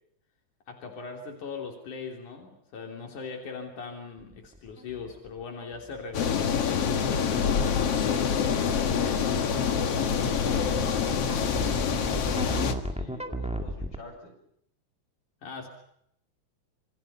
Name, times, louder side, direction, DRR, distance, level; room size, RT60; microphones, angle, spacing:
voice 1, 0.7-7.6 15.4-15.7, left 5 dB, 80° left, 2 dB, 4.7 m, -40 dB
sound 1, 4.2-14.0, right 1 dB, 5° right, 1.5 m, -37 dB
sound 2, 6.1-12.7, left 7 dB, 55° left, 2.7 m, -26 dB
voice 2, 8.9-14.4, left 1 dB, 35° left, 2 dB, 8.2 m, -46 dB
28.0 x 26.0 x 5.7 m, 0.72 s
omnidirectional pair, 3.5 m